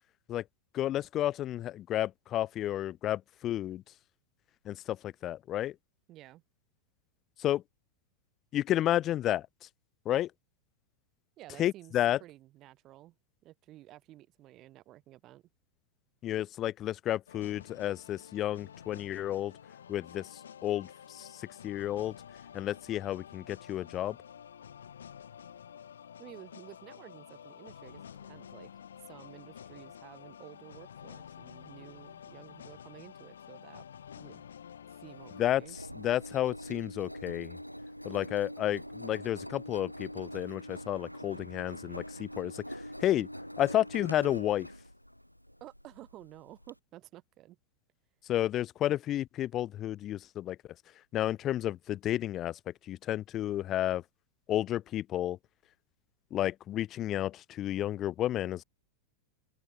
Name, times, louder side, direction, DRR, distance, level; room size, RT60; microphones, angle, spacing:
voice 1, 0.7-3.8 4.6-5.7 7.4-7.6 8.5-9.5 10.0-10.3 11.6-12.2 16.2-19.5 19.9-20.3 20.6-22.1 22.5-24.2 35.4-35.6 36.0-37.6 38.0-42.6 43.0-43.3 43.6-44.7 48.3-50.6 51.1-52.6 52.9-54.0 54.5-55.4 56.3-58.6, left 13 dB, 30° left, 1.0 m, -31 dB
voice 2, 6.1-6.4 11.4-13.1 13.4-15.4 26.2-28.7 29.0-33.8 34.2-34.4 35.0-35.8 45.6-47.6, right 15 dB, 35° right, 2.8 m, -52 dB
sound 1, 17.3-35.5, left 8 dB, 65° left, 3.1 m, -50 dB
Engine, 35.0-46.7, equal, 90° left, 1.3 m, -44 dB
figure-of-eight pair, 90°, 0 cm